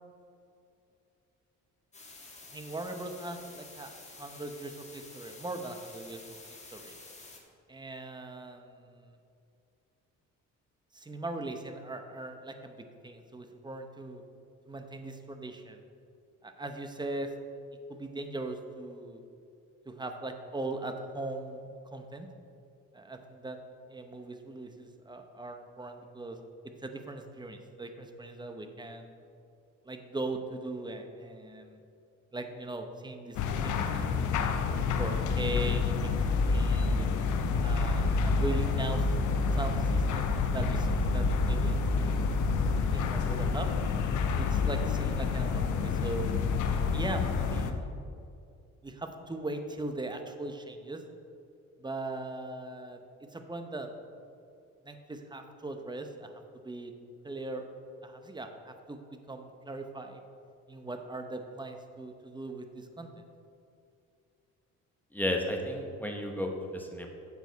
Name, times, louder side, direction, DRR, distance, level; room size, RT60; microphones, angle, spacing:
sound 1, 1.9-7.4, left 3 dB, 20° left, 1.5 m, -50 dB
voice 1, 2.5-3.9 4.2-6.4 6.7-6.9 7.7-9.1 10.9-14.2 14.7-15.8 16.4-17.3 17.9-19.2 19.9-22.3 22.9-23.6 23.9-26.4 26.8-29.1 29.8-31.8 32.3-33.4 33.6-34.3 35.0-37.1 37.6-39.1 39.5-42.4 42.9-43.7 44.3-46.4 46.9-47.9 48.8-51.0 51.8-53.0 53.3-53.9 54.8-56.9 57.2-57.6 58.0-59.0 59.3-60.2 60.7-63.2, right 2 dB, 15° right, 6 dB, 0.8 m, -39 dB
sound 2, 33.3-47.7, left 4 dB, 75° left, 0.8 m, -28 dB
voice 2, 65.1-67.1, left 1 dB, 5° left, 2 dB, 1.1 m, -32 dB
9.0 x 7.2 x 4.1 m, 2.5 s
cardioid pair, 90°, 30 cm